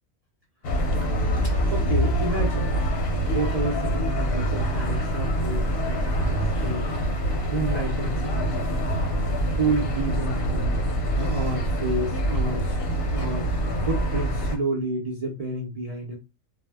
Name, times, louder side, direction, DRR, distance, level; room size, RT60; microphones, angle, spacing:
sound 1, 0.6-14.6, right 1 dB, 55° left, 0.7 m, -25 dB
voice 1, 0.9-2.8 3.3-6.9 7.5-9.0 9.5-10.7 11.1-12.8 13.1-13.5 13.8-16.1, right 2 dB, 55° right, -2 dB, 0.4 m, -30 dB
2.1 x 2.1 x 3.3 m, 0.27 s
omnidirectional pair, 1.4 m